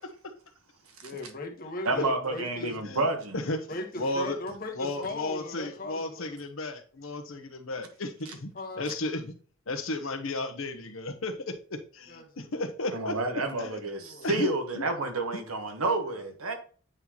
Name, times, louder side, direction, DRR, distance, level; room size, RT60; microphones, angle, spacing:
voice 1, 1.0-2.8 3.7-6.4 8.5-8.9 12.1-12.5 14.0-14.6 14.9-15.0, left 2 dB, 40° left, 1.2 m, -38 dB
voice 2, 1.8-3.4 8.2-8.3 12.9-16.5, right 2 dB, 90° right, 1.3 m, -30 dB
voice 3, 4.0-4.4 4.7-8.5 8.8-9.3 9.7-13.1 13.6-13.7 14.2-14.5, left 2 dB, 70° left, 0.9 m, -33 dB
8.8 x 4.0 x 3.0 m
head